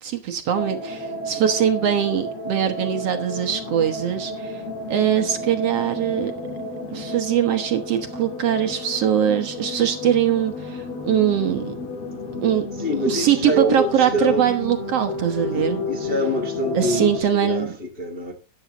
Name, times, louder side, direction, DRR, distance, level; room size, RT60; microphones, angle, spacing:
voice 1, 0.0-4.6 4.9-6.3 6.9-11.7 12.4-12.7 13.0-15.9 16.7-17.8, right 9 dB, 60° right, 1.9 m, -22 dB
sound 1, 0.5-17.2, left 2 dB, 50° left, 2.9 m, -32 dB
voice 2, 12.8-14.4 15.5-18.3, equal, 25° left, 1.2 m, -25 dB
13.5 x 10.0 x 4.0 m
omnidirectional pair, 3.5 m